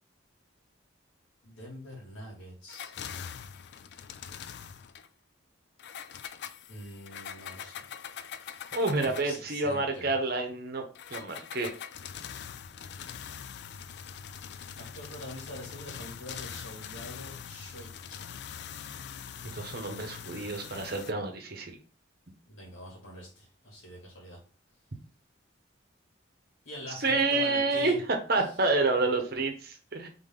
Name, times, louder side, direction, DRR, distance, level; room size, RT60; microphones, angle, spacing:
voice 1, 1.4-2.9 6.7-7.8 9.0-10.1 14.9-17.9 22.5-24.4 26.7-28.0 28.4-28.5, left 1 dB, 80° left, -2 dB, 2.3 m, -44 dB
sound 1, 2.7-5.1 5.8-9.4 10.9-21.1, left 8 dB, 55° left, 0.3 m, -43 dB
voice 2, 8.7-10.8 11.1-11.7 19.5-21.8 27.0-27.9 28.3-30.1, right 3 dB, 50° right, 4 dB, 0.9 m, -28 dB
3.7 x 3.6 x 3.7 m, 0.38 s
head